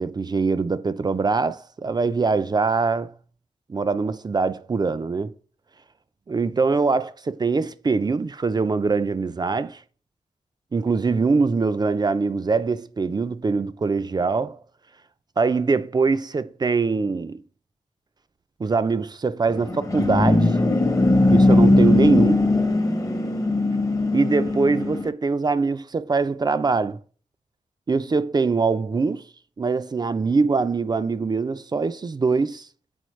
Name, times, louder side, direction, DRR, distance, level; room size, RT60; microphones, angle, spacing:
voice 1, 0.0-3.1 3.7-5.4 6.3-9.8 10.7-14.6 15.4-17.4 18.6-20.6 21.3-22.5 24.1-27.0 27.9-29.3 29.6-32.7, right 4 dB, 35° right, 0.4 m, -23 dB
sound 1, 19.5-25.1, left 2 dB, 25° left, 0.8 m, -19 dB
7.8 x 3.9 x 3.1 m
wide cardioid pair, 85°, 13 cm